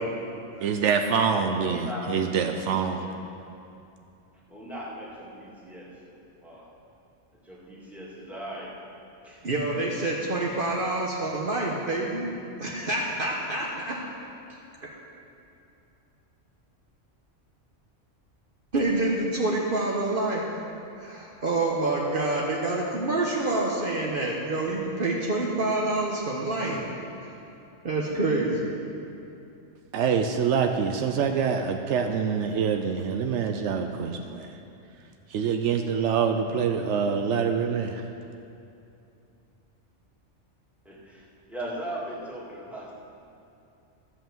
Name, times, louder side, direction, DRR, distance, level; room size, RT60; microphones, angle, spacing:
voice 1, 0.1-0.7 1.6-2.5 2.9-3.4 4.5-6.7 7.3-8.8 9.2-9.5 40.8-42.9, right 1 dB, ahead, -7 dB, 2.2 m, -39 dB
voice 2, 0.6-3.0 29.9-34.6 35.3-38.1, right 6 dB, 80° right, 5 dB, 0.9 m, -25 dB
voice 3, 9.4-12.3 12.6-14.0 18.7-20.5 21.0-26.8 27.2-27.3 27.8-28.7, right 2 dB, 50° right, -3 dB, 1.2 m, -27 dB
13.0 x 5.8 x 7.2 m, 2.7 s
omnidirectional pair, 1.2 m